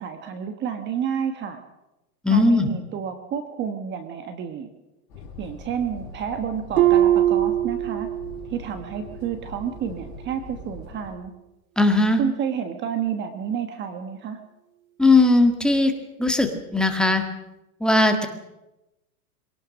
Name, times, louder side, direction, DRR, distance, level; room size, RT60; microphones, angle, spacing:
voice 1, 0.0-1.6 2.3-4.7 5.4-8.1 8.5-11.3 12.2-14.4, right 7 dB, 25° right, 8 dB, 1.4 m, -30 dB
voice 2, 2.2-2.7 11.8-12.2 15.0-15.9 16.2-17.2 17.8-18.3, left 2 dB, ahead, 4 dB, 1.7 m, -18 dB
sound 1, 5.1-11.2, left 2 dB, 35° left, 5.8 m, -42 dB
Harp, 6.8-8.5 8.9-9.3 9.9-10.0, right 12 dB, 65° right, 2.0 m, -21 dB
23.5 x 17.5 x 6.4 m, 0.96 s
hypercardioid pair, 145°, 45 cm